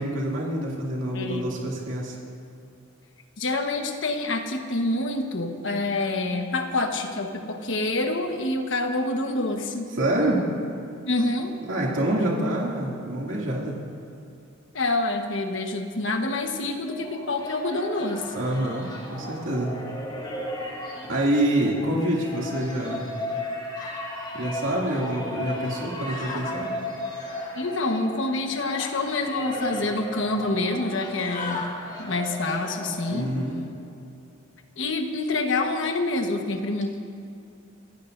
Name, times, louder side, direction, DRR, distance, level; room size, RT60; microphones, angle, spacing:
voice 1, 0.0-2.2 9.9-10.4 11.7-13.7 18.3-19.7 21.1-23.1 24.3-26.7 33.1-33.6, right 1 dB, 75° right, -3 dB, 2.5 m, -26 dB
voice 2, 1.1-1.5 3.4-9.9 11.1-11.5 14.7-18.3 27.5-31.7 32.0-33.3 34.8-37.0, left 2 dB, 65° left, 4 dB, 1.3 m, -27 dB
sound 1, 16.6-33.5, left 1 dB, 25° left, 2.8 m, -36 dB
sound 2, 23.8-24.0 25.0-25.2 26.0-26.6 27.1-27.5 28.6-29.0 29.6-29.7 29.9-30.2 31.0-31.8 32.5-32.8 33.4-33.7, left 4 dB, 40° left, 1.3 m, -38 dB
26.0 x 16.0 x 2.7 m, 2.5 s
head